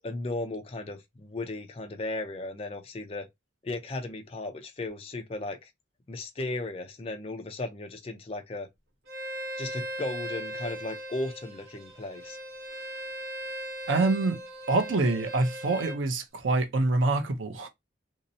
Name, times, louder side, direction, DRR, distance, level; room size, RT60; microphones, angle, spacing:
voice 1, 0.0-3.3 3.6-5.7 6.1-8.7 9.6-12.4, left 2 dB, 30° left, 0.4 m, -36 dB
Bowed string instrument, 9.1-16.0, equal, 55° right, 1.0 m, -38 dB
voice 2, 13.9-14.4 14.7-17.7, right 2 dB, 85° right, 0.6 m, -26 dB
2.6 x 2.0 x 2.6 m
head